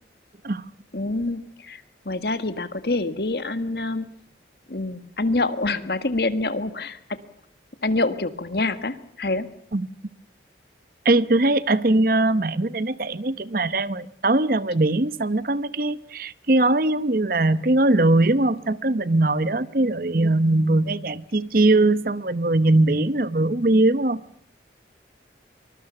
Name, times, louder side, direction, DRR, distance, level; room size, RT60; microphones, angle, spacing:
voice 1, 0.9-4.0 4.7-7.0 7.8-9.5, left 2 dB, 60° left, 11 dB, 1.7 m, -26 dB
voice 2, 11.0-24.2, right 2 dB, 50° right, 16 dB, 0.9 m, -21 dB
24.5 x 20.5 x 7.0 m, 0.64 s
head